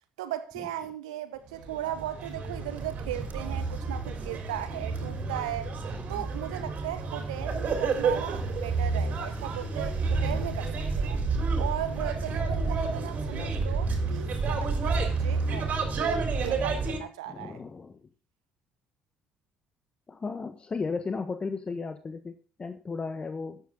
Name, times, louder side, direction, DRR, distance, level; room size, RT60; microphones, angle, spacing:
voice 1, 0.2-5.7 6.1-11.2 11.6-17.6, right 12 dB, 80° right, 1.1 m, -37 dB
sound 1, 1.5-17.0, right 4 dB, 50° right, 3.6 m, -30 dB
voice 2, 17.3-18.0 20.1-23.6, left 4 dB, 30° left, 1.3 m, -35 dB
14.5 x 10.0 x 3.8 m
figure-of-eight pair, 50°, 3 cm